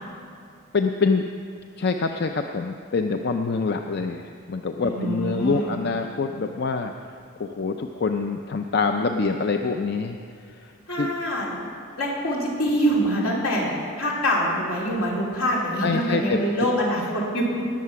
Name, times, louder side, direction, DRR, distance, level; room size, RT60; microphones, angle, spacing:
voice 1, 0.7-1.2 1.8-6.9 7.4-10.2 11.0-11.1 15.8-16.4, left 4 dB, 50° left, 5 dB, 0.5 m, -25 dB
voice 2, 4.8-5.7 10.9-11.5 12.0-17.5, equal, 80° left, -3 dB, 3.2 m, -25 dB
19.5 x 7.5 x 5.9 m, 2.3 s
head